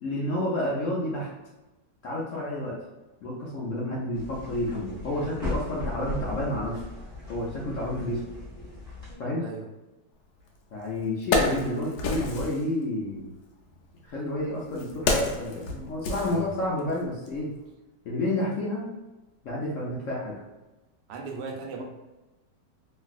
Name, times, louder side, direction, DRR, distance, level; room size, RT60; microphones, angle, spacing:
voice 1, 0.0-1.3 2.0-2.7 3.2-6.8 7.3-8.2 9.2-9.5 10.7-13.3 14.0-17.5 18.0-18.9 19.4-20.3, left 1 dB, 65° left, -5 dB, 0.8 m, -30 dB
sound 1, 4.1-9.1, left 2 dB, 5° left, 0.7 m, -37 dB
Wood, 10.5-10.6 11.0-12.6 13.6-16.9 17.3-17.4, left 3 dB, 85° left, 1.3 m, -29 dB
voice 2, 21.1-21.8, right 4 dB, 90° right, 2 dB, 1.3 m, -37 dB
3.1 x 2.6 x 2.4 m, 1.1 s
omnidirectional pair, 1.9 m